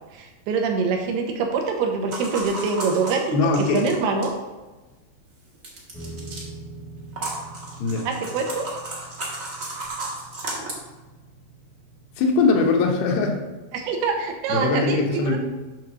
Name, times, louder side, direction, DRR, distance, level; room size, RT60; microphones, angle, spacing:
voice 1, 0.1-4.3 8.1-8.7 13.7-15.4, right 4 dB, 85° right, 3 dB, 2.9 m, -25 dB
sound 1, 2.1-4.4 5.6-6.4 7.1-10.8, right 2 dB, 60° right, 0.8 m, -33 dB
voice 2, 3.3-3.8 7.8-8.1 12.2-13.4 14.5-15.4, left 3 dB, 85° left, 2 dB, 3.0 m, -21 dB
sound 2, 5.9-12.5, right 2 dB, 35° left, 0.7 m, -43 dB
8.2 x 3.8 x 6.1 m, 1.2 s
omnidirectional pair, 4.6 m